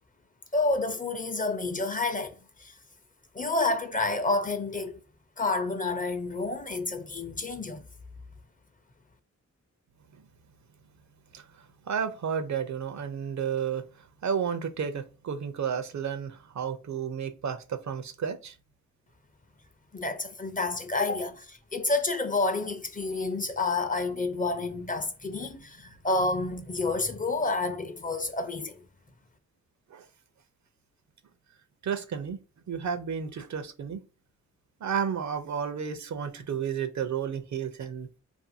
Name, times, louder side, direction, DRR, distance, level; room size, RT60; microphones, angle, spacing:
voice 1, 0.5-2.7 3.3-5.0 5.4-7.8 19.9-28.8, left 3 dB, 25° left, 0.5 m, -29 dB
voice 2, 11.9-13.9 14.2-18.5 29.9-30.0 31.8-32.4 32.7-34.0 34.8-38.1, right 7 dB, 65° right, 0.5 m, -32 dB
2.6 x 2.6 x 2.6 m
wide cardioid pair, 85°, 31 cm